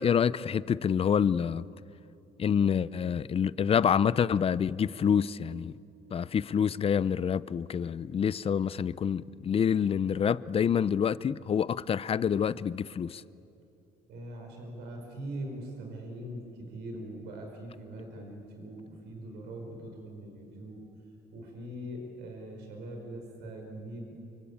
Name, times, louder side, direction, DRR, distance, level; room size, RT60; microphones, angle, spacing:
voice 1, 0.0-1.6 2.4-5.7 6.1-13.2, left 7 dB, 35° left, 0.6 m, -27 dB
voice 2, 14.1-20.8 21.3-24.1, right 1 dB, 85° right, 5.3 m, -42 dB
28.5 x 24.0 x 8.7 m
cardioid pair, 110°, 17 cm